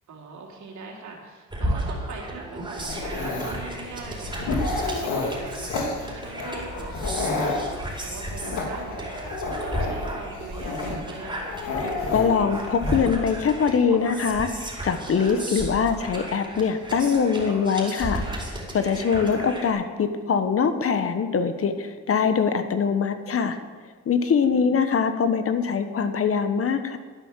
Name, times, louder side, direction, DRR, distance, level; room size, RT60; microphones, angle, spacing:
voice 1, 0.1-4.5 4.8-11.5 24.5-24.7, right 4 dB, 70° right, -1 dB, 3.4 m, -41 dB
sound 1, 1.5-19.7, right 1 dB, 15° right, 4.6 m, -34 dB
Dog, 2.8-13.0, left 3 dB, 85° left, 2.9 m, -31 dB
voice 2, 11.8-14.5 14.8-18.2 18.7-23.6 24.1-27.0, left 6 dB, 50° left, 9 dB, 1.3 m, -23 dB
11.5 x 11.0 x 7.4 m, 1.5 s
cardioid pair, 90°, 30 cm